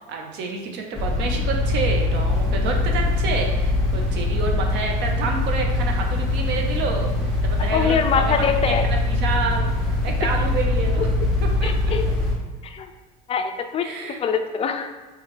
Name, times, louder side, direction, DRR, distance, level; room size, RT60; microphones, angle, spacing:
voice 1, 0.1-11.1 11.6-12.1 13.8-14.2, right 4 dB, 55° right, 2 dB, 0.7 m, -29 dB
sound 1, 0.9-12.3, left 2 dB, ahead, 1.2 m, -22 dB
voice 2, 7.7-8.9 10.2-10.3 11.6-12.1 12.6-12.9 13.3-13.9 14.2-14.9, left 6 dB, 30° left, 6 dB, 0.4 m, -23 dB
3.5 x 3.1 x 3.2 m, 1.3 s
supercardioid pair, 100°, 21 cm